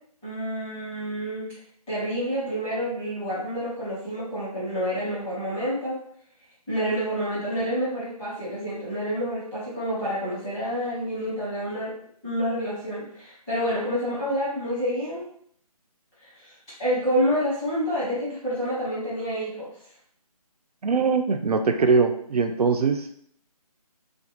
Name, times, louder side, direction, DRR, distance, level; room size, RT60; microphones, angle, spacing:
voice 1, 0.2-1.5 1.9-6.0 6.7-11.9 12.2-15.2 16.2-19.7, equal, 10° left, -12 dB, 1.0 m, -28 dB
voice 2, 20.8-23.1, right 4 dB, 75° right, 5 dB, 0.4 m, -22 dB
2.5 x 2.2 x 2.8 m, 0.63 s
figure-of-eight pair, 160°, 20 cm